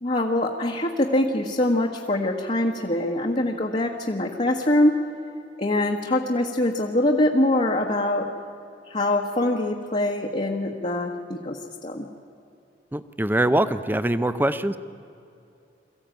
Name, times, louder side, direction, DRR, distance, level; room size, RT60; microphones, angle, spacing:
voice 1, 0.0-5.0 5.6-8.3 8.9-11.6 11.8-12.1, left 1 dB, 35° left, -1 dB, 1.4 m, -23 dB
voice 2, 12.9-14.8, right 1 dB, 10° right, 13 dB, 0.7 m, -23 dB
23.0 x 15.0 x 9.1 m, 2.7 s
head